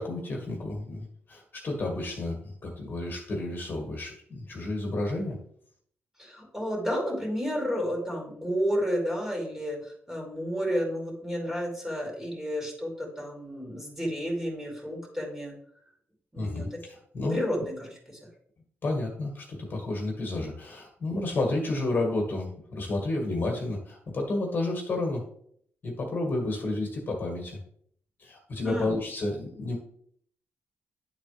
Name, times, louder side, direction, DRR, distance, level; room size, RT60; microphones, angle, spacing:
voice 1, 0.0-5.4 16.4-17.4 18.8-25.2 25.8-27.6 28.2-29.8, left 2 dB, 45° left, 0 dB, 1.8 m, -31 dB
voice 2, 6.2-15.5 16.3-16.8 17.3-18.2 28.6-29.0, equal, 10° right, -2 dB, 2.8 m, -31 dB
10.5 x 4.0 x 3.3 m, 0.63 s
cardioid pair, 105°, 5 cm